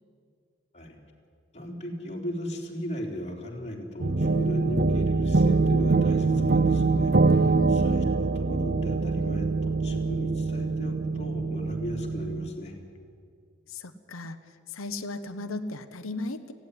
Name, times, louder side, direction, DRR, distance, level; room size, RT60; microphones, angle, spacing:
voice 1, 1.5-12.8, equal, 35° left, -1 dB, 3.7 m, -37 dB
sound 1, 4.0-12.5, right 3 dB, 50° right, 0.7 m, -24 dB
voice 2, 7.5-7.9 13.7-14.4 14.7-16.5, left 2 dB, 75° left, 7 dB, 1.1 m, -36 dB
19.0 x 15.5 x 9.9 m, 2.3 s
head